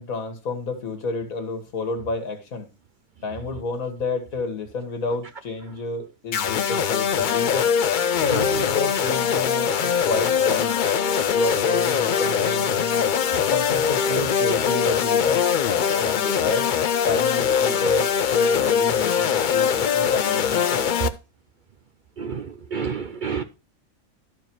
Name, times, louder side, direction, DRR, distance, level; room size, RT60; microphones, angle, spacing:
voice 1, 0.0-2.7 3.2-7.7 8.2-10.8 11.3-13.1 13.5-15.4 16.0-16.7 17.1-20.9, left 3 dB, 75° left, 2.0 m, -30 dB
sound 1, 6.3-21.1, left 7 dB, 55° left, 0.5 m, -22 dB
voice 2, 22.2-23.4, right 6 dB, 55° right, 0.5 m, -29 dB
12.5 x 4.8 x 4.5 m
omnidirectional pair, 1.4 m